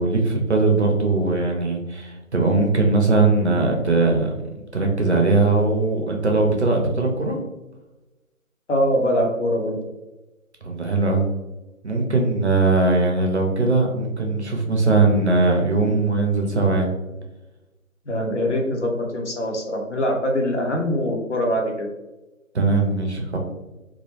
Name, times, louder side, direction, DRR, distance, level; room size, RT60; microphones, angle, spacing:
voice 1, 0.0-4.3 4.7-7.4 10.6-11.3 11.8-16.9 22.5-23.4, right 3 dB, 50° right, 2 dB, 0.5 m, -20 dB
voice 2, 8.7-9.7 12.1-12.3 18.1-21.9, equal, 55° left, 1 dB, 0.6 m, -23 dB
2.2 x 2.1 x 2.8 m, 1.0 s
figure-of-eight pair, 160°, 43 cm